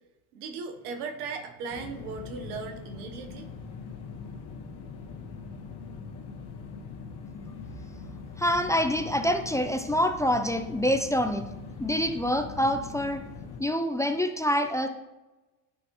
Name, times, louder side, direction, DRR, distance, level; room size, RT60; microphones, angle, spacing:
voice 1, 0.3-3.5, right 4 dB, 90° right, 6 dB, 1.1 m, -37 dB
sound 1, 1.7-13.6, left 5 dB, 60° left, 1.5 m, -42 dB
voice 2, 8.4-11.5 11.8-13.2 13.6-14.9, equal, 5° left, 6 dB, 0.5 m, -26 dB
9.5 x 6.4 x 3.0 m, 1.0 s
supercardioid pair, 90°, 45 cm